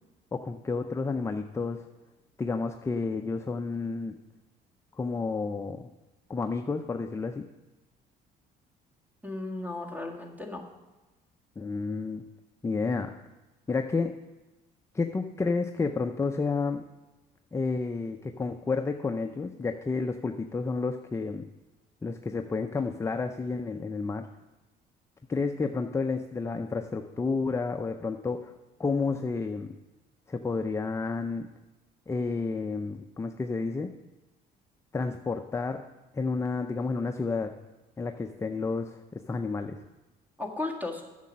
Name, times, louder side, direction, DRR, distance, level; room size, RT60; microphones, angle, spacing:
voice 1, 0.3-1.8 2.4-4.2 5.0-5.9 6.3-7.5 11.6-12.2 12.6-13.1 13.7-14.1 14.9-16.9 17.5-21.5 22.0-24.3 25.3-28.5 28.8-29.7 30.3-31.5 32.1-33.9 34.9-35.8 36.1-37.5 38.0-39.8, left 4 dB, 15° left, 6 dB, 0.5 m, -30 dB
voice 2, 9.2-10.6 40.4-41.0, left 2 dB, 10° right, 2 dB, 1.8 m, -35 dB
9.4 x 6.7 x 7.4 m, 1.1 s
cardioid pair, 110°, 17 cm